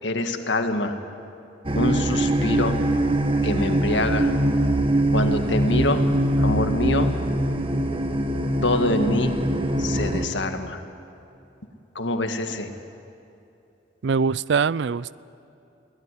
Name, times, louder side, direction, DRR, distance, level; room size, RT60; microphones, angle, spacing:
voice 1, 0.0-1.0 1.7-2.8 3.4-4.3 5.1-6.0 6.4-7.1 8.6-9.3 9.8-10.8 12.0-12.7, left 1 dB, 85° left, 6 dB, 1.8 m, -25 dB
sound 1, 1.6-10.3, right 1 dB, 30° right, 1.3 m, -23 dB
voice 2, 14.0-15.2, right 5 dB, 70° right, 21 dB, 0.4 m, -23 dB
22.5 x 17.5 x 10.0 m, 2.8 s
head